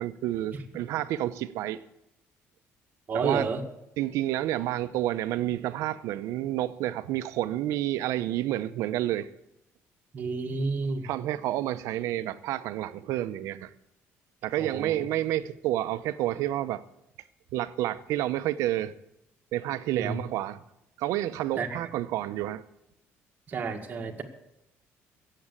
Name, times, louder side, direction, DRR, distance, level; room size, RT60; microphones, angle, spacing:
voice 1, 0.0-1.8 3.1-3.5 4.0-9.3 11.0-13.7 14.4-16.8 17.5-18.9 19.5-20.6 21.0-22.6, right 14 dB, 85° right, 0.8 m, -29 dB
voice 2, 3.1-3.6 10.1-11.1 14.6-15.0 19.9-20.1 21.6-21.7 23.5-24.2, right 4 dB, 35° right, 1.7 m, -30 dB
16.5 x 7.7 x 8.4 m
cardioid pair, 165°, 5 cm